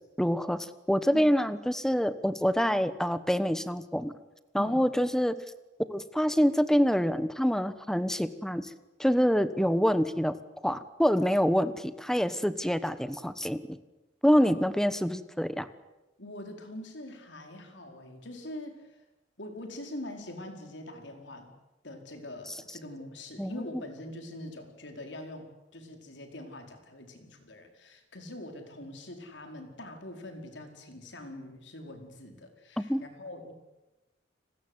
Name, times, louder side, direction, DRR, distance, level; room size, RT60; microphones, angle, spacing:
voice 1, 0.2-4.1 4.5-5.3 5.9-8.7 9.0-10.4 10.6-13.8 14.2-15.7 23.4-23.6 32.8-33.0, equal, 5° left, 13 dB, 1.1 m, -26 dB
voice 2, 4.6-4.9 14.4-14.6 16.2-19.0 19.4-21.5 21.8-33.5, left 1 dB, 85° left, 4 dB, 4.8 m, -43 dB
30.0 x 20.0 x 8.2 m, 1.0 s
head